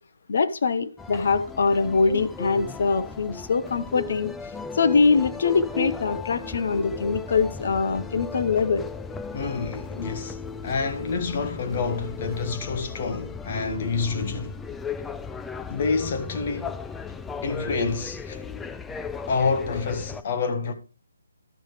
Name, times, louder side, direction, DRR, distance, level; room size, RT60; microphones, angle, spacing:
voice 1, 0.3-4.3 4.7-8.8, left 4 dB, 60° left, 0.9 m, -23 dB
sound 1, 1.0-20.2, left 4 dB, 5° left, 0.3 m, -36 dB
voice 2, 9.3-14.6 15.7-16.8 17.4-18.4 19.3-20.7, left 4 dB, 40° left, 1.3 m, -28 dB
12.0 x 6.4 x 3.2 m
hypercardioid pair, 155°, 0 cm